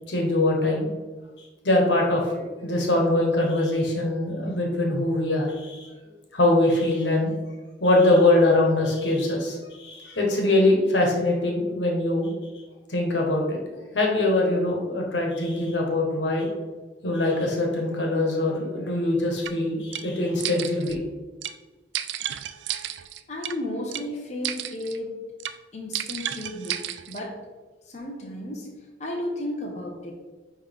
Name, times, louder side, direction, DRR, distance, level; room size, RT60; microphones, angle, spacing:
voice 1, 0.1-0.9 1.6-5.8 6.3-7.3 7.8-12.3 12.9-13.6 13.9-16.5 17.0-21.0, left 2 dB, 80° left, 0 dB, 1.5 m, -23 dB
sound 1, 19.5-19.6 19.9-20.1 20.4-21.0 21.4-21.6 21.9-23.6 23.9-24.1 24.4-25.0 25.4-25.6 25.9-27.2, right 11 dB, 80° right, 0.4 m, -32 dB
voice 2, 23.3-25.2 25.7-26.8 27.1-27.4 27.8-30.1, left 1 dB, 40° left, -2 dB, 1.0 m, -33 dB
9.7 x 3.3 x 3.6 m, 1.3 s
head